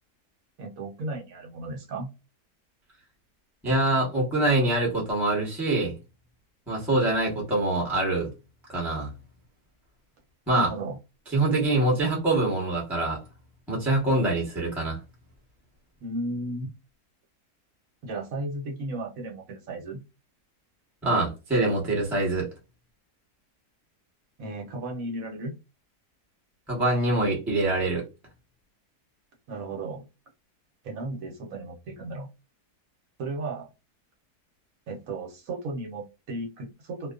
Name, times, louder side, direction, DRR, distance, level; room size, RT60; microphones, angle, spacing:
voice 1, 0.6-2.1 10.5-11.0 16.0-16.7 18.0-20.0 24.4-25.5 29.5-30.1 30.8-32.3 33.2-33.7 34.9-37.1, right 2 dB, 65° right, 1.1 m, -34 dB
voice 2, 3.6-5.9 6.7-8.3 8.7-9.1 10.5-10.7 11.3-13.2 13.7-15.0 21.0-22.5 26.7-28.0, right 2 dB, ahead, 0.8 m, -24 dB
2.6 x 2.2 x 2.3 m
omnidirectional pair, 1.7 m